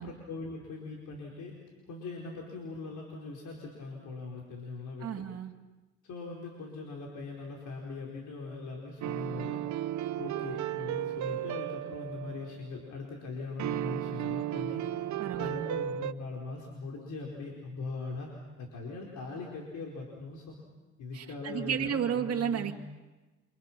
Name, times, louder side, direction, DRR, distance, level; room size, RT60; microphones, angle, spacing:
voice 1, 0.0-1.5 1.8-5.1 6.0-9.6 10.2-15.1 15.4-20.5 21.0-22.7, left 3 dB, 75° left, -1 dB, 4.7 m, -41 dB
voice 2, 5.0-5.5 15.2-15.7 21.1-22.7, right 8 dB, 55° right, 2 dB, 2.0 m, -32 dB
sound 1, 9.0-12.7 13.6-16.1, right 12 dB, 70° right, 0.8 m, -34 dB
29.0 x 26.5 x 6.0 m, 1.2 s
cardioid pair, 90°, 30 cm